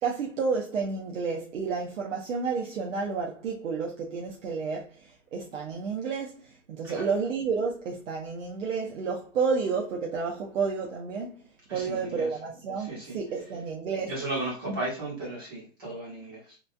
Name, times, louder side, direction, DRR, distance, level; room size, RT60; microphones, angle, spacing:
voice 1, 0.0-11.4 11.7-14.1 14.7-14.8, right 5 dB, 80° right, 0.7 m, -31 dB
voice 2, 11.7-12.3 12.9-13.2 14.0-16.6, right 2 dB, 20° right, 0.6 m, -35 dB
3.0 x 2.3 x 2.5 m
hypercardioid pair, 165°, 38 cm